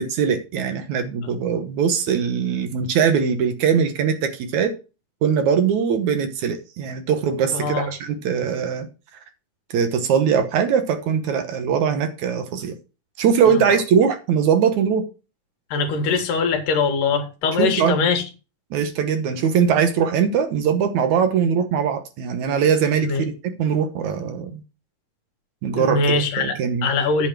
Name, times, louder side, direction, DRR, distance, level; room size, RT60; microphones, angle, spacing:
voice 1, 0.0-4.7 5.2-8.9 9.7-12.7 13.2-15.0 17.6-18.0 18.7-23.3 23.6-24.6 25.6-26.9, right 7 dB, 70° right, 2.3 m, -21 dB
voice 2, 7.5-7.9 15.7-18.2 23.0-23.2 25.8-26.6 26.8-27.3, left 4 dB, 75° left, 3.1 m, -22 dB
8.7 x 5.5 x 6.0 m
omnidirectional pair, 3.8 m